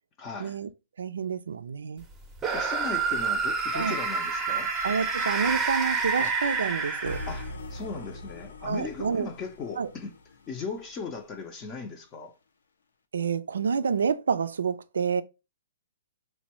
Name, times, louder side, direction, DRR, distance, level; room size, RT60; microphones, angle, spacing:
voice 1, 0.2-0.6 2.5-4.7 6.2-6.3 7.3-10.1 10.5-12.3, left 5 dB, 25° left, 0.5 m, -38 dB
voice 2, 1.0-2.0 3.7-4.0 4.8-7.2 8.6-9.3 9.8-9.9 13.1-15.2, right 6 dB, 80° right, 0.4 m, -28 dB
sound 1, 2.4-7.6, right 4 dB, 15° right, 0.6 m, -28 dB
sound 2, 7.0-11.2, left 1 dB, 80° left, 0.6 m, -41 dB
4.1 x 2.2 x 2.9 m
hypercardioid pair, 140°, 0 cm